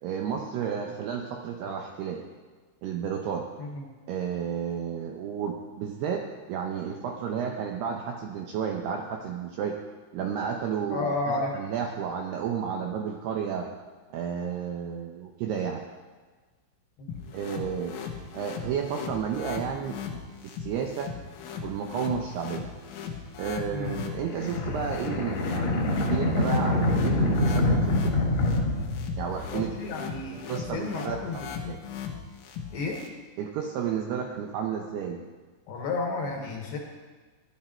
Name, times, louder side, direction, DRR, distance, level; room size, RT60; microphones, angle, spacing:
voice 1, 0.0-2.3 2.8-3.5 4.1-6.2 6.5-9.8 10.1-13.7 14.1-15.8 17.3-17.9 18.3-21.1 21.6-22.6 23.4-28.2 29.2-29.8 30.3-31.8 33.4-35.2, right 7 dB, 80° right, 2 dB, 2.4 m, -32 dB
voice 2, 10.9-11.5 17.0-17.2 23.7-23.9 29.5-31.4 31.6-31.8 32.7-33.0 35.7-36.8, left 3 dB, 65° left, 1 dB, 3.1 m, -32 dB
sound 1, 17.1-33.1, left 7 dB, 85° left, 4.0 m, -39 dB
sound 2, 23.8-29.7, left 1 dB, 50° left, 2.4 m, -26 dB
16.0 x 11.5 x 4.4 m, 1.4 s
omnidirectional pair, 5.7 m